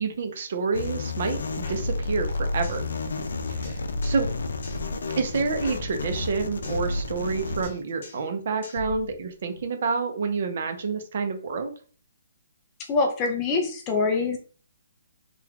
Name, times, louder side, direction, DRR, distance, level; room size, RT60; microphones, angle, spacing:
voice 1, 0.0-2.9 3.5-4.3 5.2-11.7, right 4 dB, 45° right, 6 dB, 0.7 m, -28 dB
sound 1, 0.7-7.6, left 3 dB, 80° left, 0.5 m, -30 dB
sound 2, 1.6-2.9 3.2-3.3 3.6-4.3 4.6-6.9 7.2-7.4 7.6-8.3 8.6-9.6, left 3 dB, 50° left, 1.0 m, -42 dB
voice 2, 12.9-14.4, left 4 dB, 15° left, 3 dB, 0.4 m, -24 dB
3.4 x 2.3 x 3.4 m, 0.40 s
hypercardioid pair, 170°, 0 cm